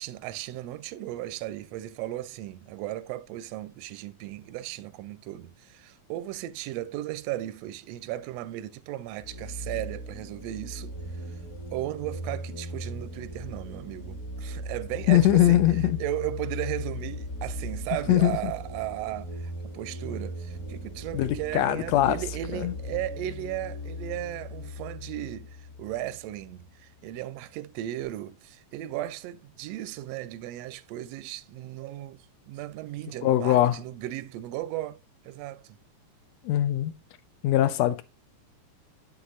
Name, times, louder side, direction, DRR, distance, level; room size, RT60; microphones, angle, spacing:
voice 1, 0.0-11.4 11.7-15.6 16.0-35.0 35.2-35.8, right 14 dB, 80° right, 1.5 m, -36 dB
sound 1, 9.2-26.6, left 1 dB, 40° left, 1.4 m, -38 dB
voice 2, 15.1-16.0 18.1-18.5 21.1-22.2 22.5-22.7 33.2-33.8 36.4-37.0 37.4-38.0, left 13 dB, 75° left, 1.8 m, -22 dB
8.3 x 8.1 x 2.5 m
omnidirectional pair, 3.4 m